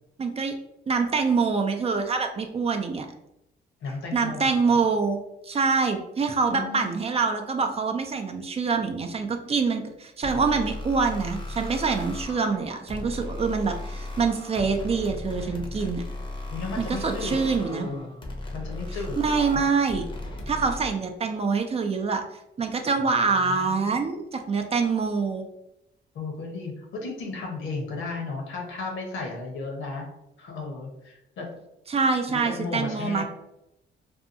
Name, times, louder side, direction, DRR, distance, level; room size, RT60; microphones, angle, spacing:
voice 1, 0.2-0.6 0.9-3.1 4.1-16.0 16.8-17.9 19.2-20.1 20.5-22.2 22.6-25.4 31.9-33.2, right 4 dB, 30° right, 5 dB, 0.4 m, -25 dB
voice 2, 3.8-4.7 6.5-6.9 16.5-18.1 18.5-19.6 23.4-24.0 26.1-30.0 30.4-31.5 32.3-33.2, left 3 dB, 80° left, 0 dB, 0.9 m, -34 dB
sound 1, 10.2-20.9, left 2 dB, 25° left, 0.6 m, -36 dB
2.7 x 2.2 x 2.5 m, 0.83 s
cardioid pair, 90°, 20 cm